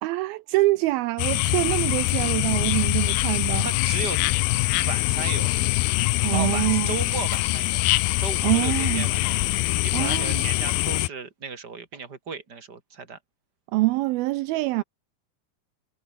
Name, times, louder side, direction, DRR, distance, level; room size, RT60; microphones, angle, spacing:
voice 1, 0.0-3.7 6.2-6.9 8.4-9.1 9.9-10.4 13.7-14.8, right 19 dB, 80° right, 2.4 m, -25 dB
sound 1, 1.2-11.1, left 21 dB, 80° left, 2.3 m, -24 dB
voice 2, 3.6-4.2 4.8-5.6 6.3-7.9 8.2-9.4 9.8-13.2, right 5 dB, 25° right, 3.7 m, -35 dB
omnidirectional pair, 4.5 m